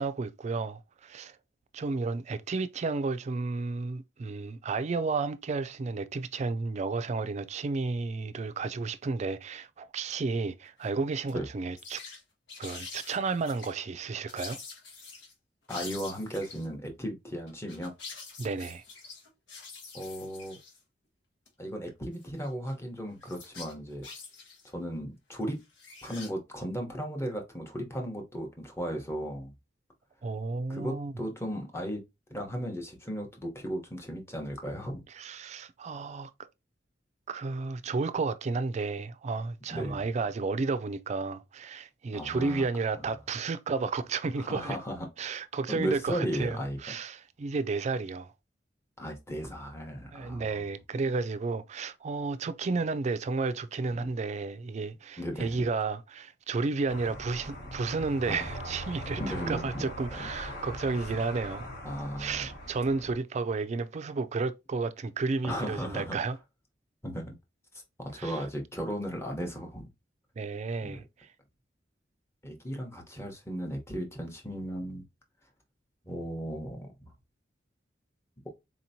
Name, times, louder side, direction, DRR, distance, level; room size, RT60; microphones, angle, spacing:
voice 1, 0.0-1.4 1.7-12.0 12.6-14.6 18.4-18.8 30.2-31.1 35.2-36.3 37.3-44.8 45.2-48.3 50.1-61.7 62.2-66.4 68.2-68.4 70.4-71.3, right 4 dB, 40° right, 0.4 m, -32 dB
sound 1, 10.6-10.9 11.3-11.4 11.7-12.2 12.5-13.7 14.3-15.3 15.7-16.7 17.5-20.8 21.5-21.6 22.1-22.7 23.2-24.7 25.6-26.3, left 4 dB, 80° left, 1.3 m, -46 dB
voice 2, 15.7-17.9 19.9-20.6 21.6-24.0 24.6-25.6 26.0-29.5 30.7-32.0 32.3-35.0 39.7-40.0 42.1-42.6 44.4-45.1 45.7-46.9 49.0-50.7 54.0-54.1 55.2-55.7 58.3-58.4 59.2-59.8 60.2-60.3 61.8-62.5 65.4-66.2 67.0-67.4 68.0-69.9 70.8-71.0 72.4-75.0 76.1-77.1, equal, 15° left, 0.9 m, -36 dB
sound 2, 56.9-63.2, equal, 60° left, 1.3 m, -41 dB
4.2 x 2.9 x 2.7 m
head